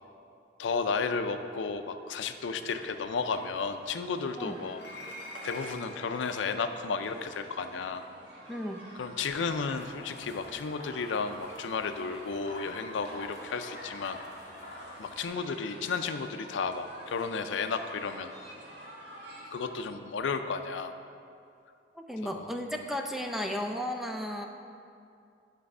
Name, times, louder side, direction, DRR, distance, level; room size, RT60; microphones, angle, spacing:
voice 1, 0.6-4.8 5.4-8.0 9.0-14.2 15.0-18.3 19.4-20.9 22.2-22.8, left 5 dB, 85° left, 8 dB, 0.4 m, -33 dB
sound 1, 2.5-19.7, right 1 dB, 70° right, 1.3 m, -50 dB
sound 2, 4.7-6.1 7.4-7.5 8.4-8.6, left 1 dB, 60° left, 1.2 m, -45 dB
voice 2, 8.5-8.9 21.9-24.5, equal, ahead, 3 dB, 0.4 m, -34 dB
sound 3, 9.3-15.3, left 1 dB, 35° left, 1.4 m, -47 dB
10.0 x 3.4 x 5.4 m, 2.5 s
head